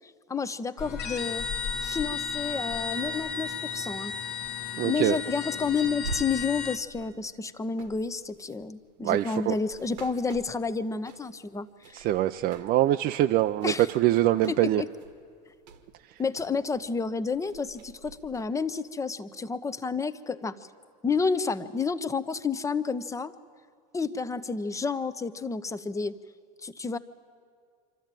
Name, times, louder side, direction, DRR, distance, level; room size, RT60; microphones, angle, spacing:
voice 1, 0.3-1.4 1.8-4.1 4.8-12.1 13.6-13.9 14.5-14.9 16.2-20.7 21.0-23.3 23.9-26.2 26.6-27.0, left 5 dB, 15° left, 13 dB, 0.8 m, -30 dB
sound 1, 0.8-6.8, left 6 dB, 50° left, 1.1 m, -34 dB
voice 2, 4.7-5.2 9.0-9.5 11.9-14.8, right 13 dB, 45° right, 7 dB, 0.5 m, -24 dB
sound 2, 6.0-11.5 11.8-13.0 13.3-17.0 17.2-18.5, right 4 dB, 90° right, 1.4 m, -45 dB
25.5 x 13.0 x 9.0 m, 2.2 s
supercardioid pair, 105°, 21 cm